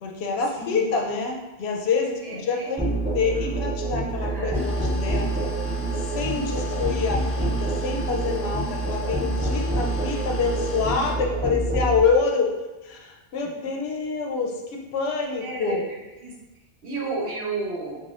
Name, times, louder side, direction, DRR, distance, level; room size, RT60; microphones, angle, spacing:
voice 1, 0.0-5.5 6.1-12.5 12.8-14.5 14.9-15.8, left 5 dB, 75° left, 1 dB, 0.8 m, -26 dB
voice 2, 2.2-2.7 4.2-4.6 15.4-15.8 16.2-16.3 16.8-18.0, right 3 dB, 65° right, -4 dB, 1.0 m, -32 dB
Musical instrument, 2.8-12.0, right 2 dB, 15° right, 0.4 m, -27 dB
sound 1, 4.5-11.1, left 5 dB, 20° left, 0.8 m, -38 dB
4.0 x 2.3 x 2.4 m, 1.1 s
omnidirectional pair, 1.1 m